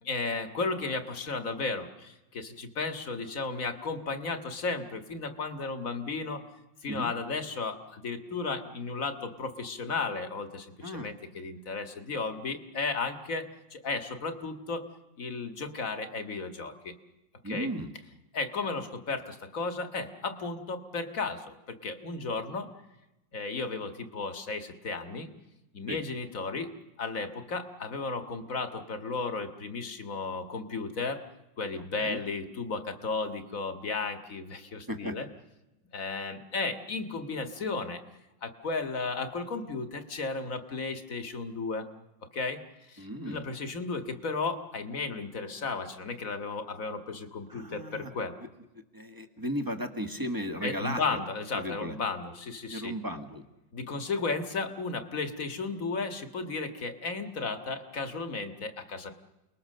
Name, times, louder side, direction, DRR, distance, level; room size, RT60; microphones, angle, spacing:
voice 1, 0.0-6.4 6.8-13.5 13.7-14.9 15.2-16.9 17.4-17.7 18.3-22.7 23.3-25.3 25.7-26.7 27.0-31.2 31.6-35.3 35.9-38.0 38.4-41.9 42.3-42.6 42.9-48.4 50.6-52.9 53.7-59.1, left 4 dB, 45° left, 7 dB, 2.0 m, -34 dB
voice 2, 10.8-11.1 17.4-17.9 25.9-26.0 31.8-32.2 34.9-35.2 43.0-43.4 47.5-48.1 48.9-51.0 51.5-51.9 52.7-53.4, equal, 10° right, 6 dB, 1.5 m, -35 dB
29.0 x 20.5 x 6.7 m, 0.97 s
omnidirectional pair, 2.0 m